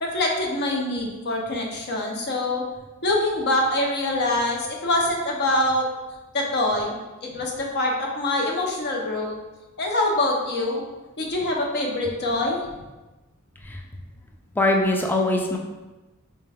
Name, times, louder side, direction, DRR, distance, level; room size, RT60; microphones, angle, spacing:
voice 1, 0.0-2.6 3.0-5.8 6.3-6.9 7.2-9.4 9.8-10.8 11.2-12.6, left 1 dB, 50° left, 0 dB, 0.7 m, -24 dB
voice 2, 14.6-15.6, left 2 dB, 10° left, 1 dB, 0.3 m, -22 dB
4.5 x 2.2 x 3.3 m, 1.1 s
head